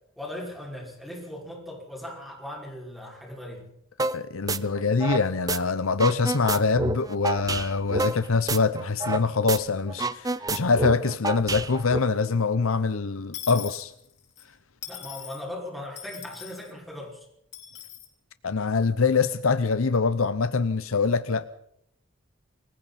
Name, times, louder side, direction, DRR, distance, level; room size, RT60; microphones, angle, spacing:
voice 1, 0.2-3.7 14.9-17.2, left 1 dB, ahead, 5.7 m, -38 dB
voice 2, 4.0-13.9 18.4-21.5, left 4 dB, 90° left, 0.8 m, -24 dB
sound 1, 4.0-4.2 4.5-5.6 5.9-9.2 9.5-9.6 9.9-12.0, right 3 dB, 15° right, 0.7 m, -28 dB
Dishes pots and pans / Coin (dropping), 13.3-14.4 14.8-15.4 16.0-16.7 17.5-18.1, left 10 dB, 55° left, 4.6 m, -40 dB
28.5 x 21.5 x 4.3 m
head